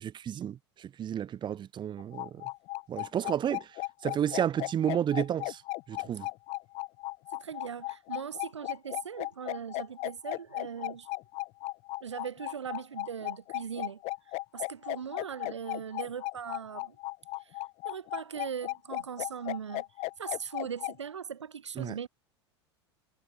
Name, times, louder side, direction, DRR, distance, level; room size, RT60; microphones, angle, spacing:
voice 1, 0.0-2.4 2.9-3.7 4.0-5.6 5.9-6.3 21.8-21.9, right 10 dB, 30° right, 2.0 m, -31 dB
sound 1, 2.0-20.9, left 21 dB, 45° left, 1.1 m, -36 dB
voice 2, 7.3-11.1 12.0-17.0 17.4-19.9 20.2-22.1, right 7 dB, 85° right, 0.9 m, -40 dB
figure-of-eight pair, 85°, 15 cm